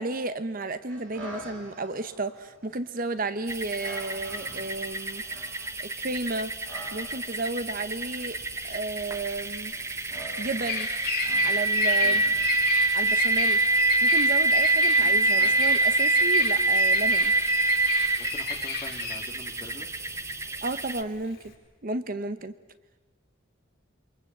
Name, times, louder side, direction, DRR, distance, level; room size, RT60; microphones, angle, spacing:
voice 1, 0.0-5.2 5.8-6.5 6.9-8.4 8.6-9.7 10.4-10.9 11.4-12.2 12.9-13.6 14.0-17.3 20.6-21.4 21.8-22.5, right 3 dB, 45° right, 12 dB, 0.9 m, -32 dB
sound 1, 0.9-18.5, right 1 dB, 80° right, 6.8 m, -48 dB
sound 2, 3.5-21.0, right 2 dB, 15° right, 1.0 m, -26 dB
Bird vocalization bird call bird song, 8.3-21.5, left 6 dB, 50° left, 4.7 m, -34 dB
voice 2, 18.2-19.9, left 1 dB, 20° left, 3 dB, 2.5 m, -44 dB
28.0 x 23.5 x 8.1 m, 1.2 s
head